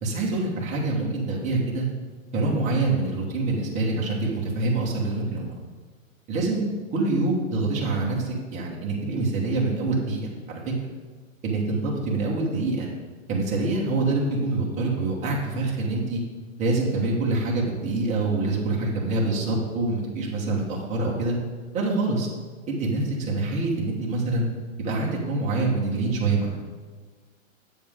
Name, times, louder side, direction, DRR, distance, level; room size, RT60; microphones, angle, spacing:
voice 1, 0.0-1.9 2.3-5.5 6.3-10.6 11.4-12.9 13.3-16.2 16.6-21.4 21.7-22.3 22.7-24.5 24.8-26.6, right 2 dB, 15° right, -3 dB, 1.3 m, -25 dB
7.6 x 7.2 x 3.7 m, 1.4 s
hypercardioid pair, 155°, 41 cm